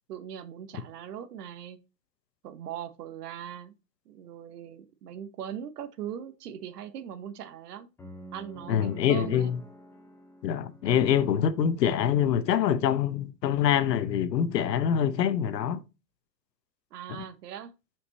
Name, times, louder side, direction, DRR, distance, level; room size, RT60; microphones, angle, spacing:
voice 1, 0.1-1.8 2.4-3.7 4.1-7.9 8.3-9.5 16.9-17.7, right 9 dB, 70° right, 1.1 m, -40 dB
sound 1, 8.0-12.1, right 1 dB, 5° left, 0.6 m, -49 dB
voice 2, 8.7-9.6 10.4-15.8, left 9 dB, 90° left, 1.0 m, -25 dB
5.5 x 5.2 x 4.0 m
hypercardioid pair, 145°, 48 cm